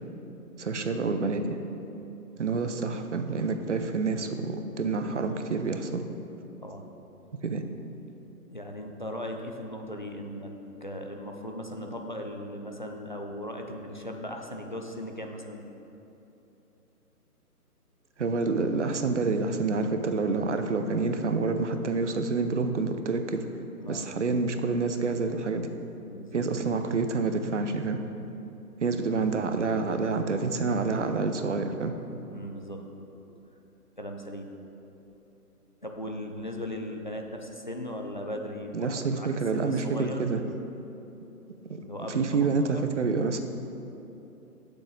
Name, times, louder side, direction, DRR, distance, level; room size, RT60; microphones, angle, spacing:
voice 1, 0.6-1.6 2.4-6.0 7.4-7.6 18.2-23.4 23.9-25.7 26.3-28.0 28.8-31.9 38.7-40.4 41.7-41.8 42.1-43.4, right 4 dB, 50° right, 7 dB, 0.8 m, -28 dB
voice 2, 8.5-10.5 10.8-15.6 23.8-24.1 26.1-26.4 28.9-29.0 32.3-33.1 34.0-34.5 35.8-40.2 41.8-42.9, left 1 dB, 30° left, 2 dB, 0.5 m, -38 dB
12.0 x 6.9 x 4.0 m, 3.0 s
hypercardioid pair, 165°, 47 cm